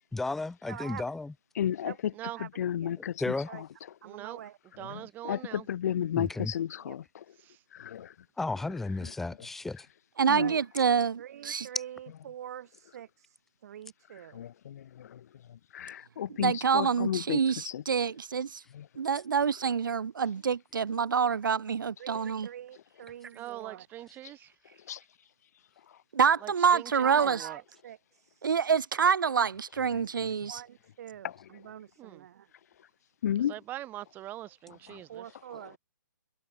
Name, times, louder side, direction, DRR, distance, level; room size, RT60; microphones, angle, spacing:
voice 1, 0.1-1.3 3.2-3.5 6.1-6.5 8.4-9.9, left 3 dB, 5° left, 0.3 m, -33 dB
voice 2, 0.6-1.1 1.8-2.0 2.4-2.9 3.5-3.6 4.0-4.6 6.8-7.0 10.3-10.6 11.2-13.4 13.6-14.4 22.0-23.9 27.0-28.5 30.5-32.5 35.1-35.8, right 10 dB, 50° right, 2.4 m, -45 dB
voice 3, 1.6-1.9 2.6-3.7 4.8-7.2 7.7-8.1 9.0-9.1 10.3-10.5 14.3-17.4 17.6-17.8 18.7-18.9 24.9-25.0 29.9-30.0 31.2-31.3 33.2-33.5 34.9-35.0, left 10 dB, 50° left, 0.8 m, -33 dB
voice 4, 4.0-4.4 4.8-5.7 7.4-7.6 23.3-24.4 26.4-27.6 32.0-32.3 33.5-35.3 35.7-35.8, right 14 dB, 15° right, 0.8 m, -42 dB
voice 5, 10.2-11.7 16.4-18.6 19.0-22.5 26.1-27.4 28.4-30.6, right 6 dB, 80° right, 0.7 m, -27 dB
hypercardioid pair, 145°, 11 cm